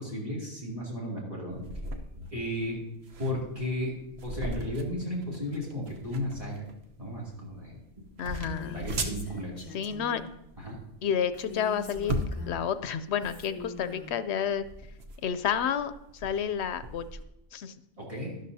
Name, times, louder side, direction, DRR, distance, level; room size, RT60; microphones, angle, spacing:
voice 1, 0.0-1.7 2.2-2.8 3.2-3.9 4.2-6.6 7.0-8.1 8.6-9.7 10.6-10.8 18.0-18.4, left 1 dB, 30° right, -5 dB, 2.8 m, -34 dB
sound 1, 1.5-17.2, right 1 dB, 75° right, 1.1 m, -39 dB
voice 2, 8.2-8.8 9.7-10.2 11.0-12.2 12.4-14.6 15.2-17.1 17.5-17.7, left 8 dB, 80° left, 13 dB, 0.9 m, -30 dB
Female speech woman speaking, 8.4-10.3 11.3-12.7 13.2-14.2, left 4 dB, 35° left, 1.0 m, -43 dB
12.0 x 11.5 x 2.7 m, 0.84 s
omnidirectional pair, 1.1 m